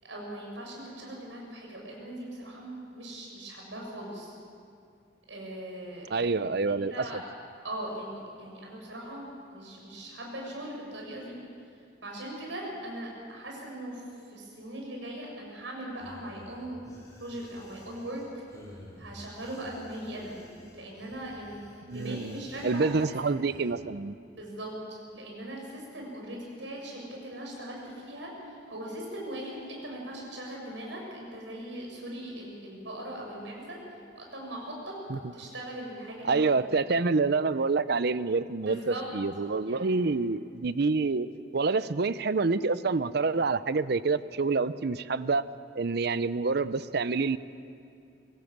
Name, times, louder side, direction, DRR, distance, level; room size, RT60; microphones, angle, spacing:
voice 1, 0.0-4.4 5.3-6.3 6.7-7.2 7.6-11.4 12.0-16.8 17.2-18.4 19.0-20.3 20.7-21.6 21.9-23.4 24.4-33.8 34.1-34.9 35.3-36.5 38.7-39.0 39.7-39.9, right 1 dB, 85° right, -1 dB, 6.5 m, -40 dB
voice 2, 6.1-7.2 21.9-22.4 22.6-24.2 35.1-35.2 36.2-41.3 41.5-45.4 45.8-47.4, right 4 dB, 60° right, 15 dB, 0.6 m, -27 dB
sound 1, 15.9-23.7, left 1 dB, 20° left, 4.3 m, -51 dB
23.5 x 17.0 x 7.4 m, 2.4 s
head